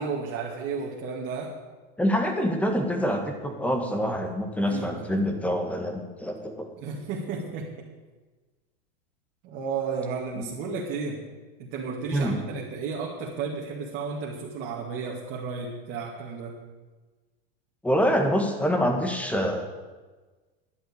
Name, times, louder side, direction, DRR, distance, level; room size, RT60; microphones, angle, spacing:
voice 1, 0.0-1.6 4.6-5.2 6.8-7.7 9.4-11.2 11.6-16.6, right 5 dB, 40° right, -2 dB, 2.3 m, -33 dB
voice 2, 2.0-6.7 10.4-10.5 12.1-12.4 17.8-19.7, equal, 5° left, 4 dB, 1.7 m, -26 dB
11.0 x 8.1 x 9.9 m, 1.3 s
supercardioid pair, 150°, 29 cm